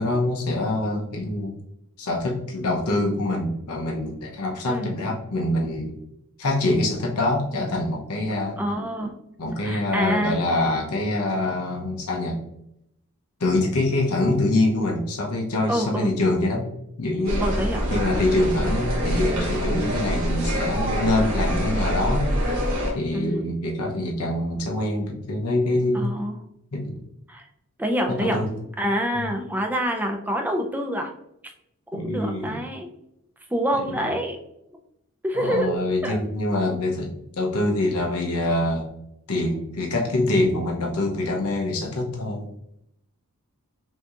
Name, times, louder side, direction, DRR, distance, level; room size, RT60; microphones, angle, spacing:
voice 1, 0.0-1.6 2.0-5.9 6.4-8.6 9.4-12.4 13.4-16.7 17.0-17.5 17.9-22.2 22.9-26.1 26.7-27.0 28.1-28.6 31.9-32.6 35.3-38.9 39.3-42.4, left 2 dB, 85° left, 0 dB, 0.8 m, -25 dB
voice 2, 8.6-9.2 9.6-10.4 15.7-16.1 17.4-17.9 23.1-23.5 25.9-26.4 27.3-27.5 27.8-28.4 28.8-31.1 31.9-32.9 33.5-34.4 35.2-35.7 36.0-36.2, right 1 dB, 10° right, 3 dB, 0.4 m, -26 dB
sound 1, 17.2-22.9, equal, 65° right, 1.3 m, -25 dB
5.9 x 2.8 x 2.4 m, 0.79 s
head